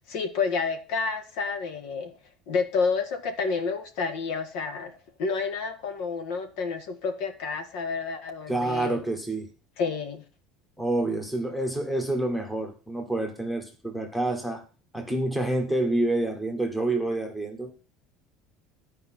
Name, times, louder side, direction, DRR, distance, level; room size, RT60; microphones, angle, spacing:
voice 1, 0.1-2.2 2.5-4.9 5.2-9.0 9.8-10.2, left 5 dB, 60° left, 8 dB, 1.7 m, -29 dB
voice 2, 8.5-9.5 10.8-14.6 14.9-17.7, right 2 dB, 5° left, 5 dB, 1.3 m, -28 dB
12.0 x 5.0 x 6.0 m, 0.35 s
cardioid pair, 175°, 0 cm